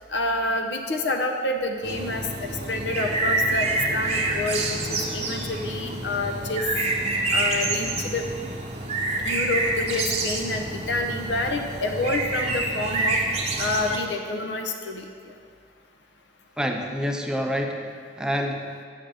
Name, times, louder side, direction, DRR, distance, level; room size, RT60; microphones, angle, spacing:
voice 1, 0.1-6.6 7.3-8.2 9.2-13.2 13.6-15.3, left 2 dB, 80° left, 4 dB, 0.6 m, -28 dB
sound 1, 1.8-14.0, right 2 dB, 35° right, 0.7 m, -27 dB
voice 2, 16.6-18.9, equal, 5° right, 3 dB, 0.4 m, -28 dB
7.3 x 6.5 x 3.3 m, 2.1 s
head